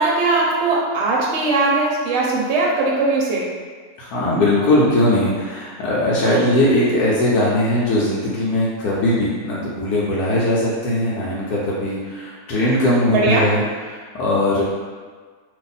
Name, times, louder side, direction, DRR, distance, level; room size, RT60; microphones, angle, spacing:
voice 1, 0.0-3.5 6.2-6.5 13.0-13.5 14.6-14.7, right 3 dB, 55° right, -3 dB, 0.9 m, -20 dB
voice 2, 4.0-13.6 13.9-14.6, left 1 dB, 85° left, -6 dB, 1.2 m, -19 dB
2.8 x 2.5 x 3.9 m, 1.5 s
omnidirectional pair, 1.7 m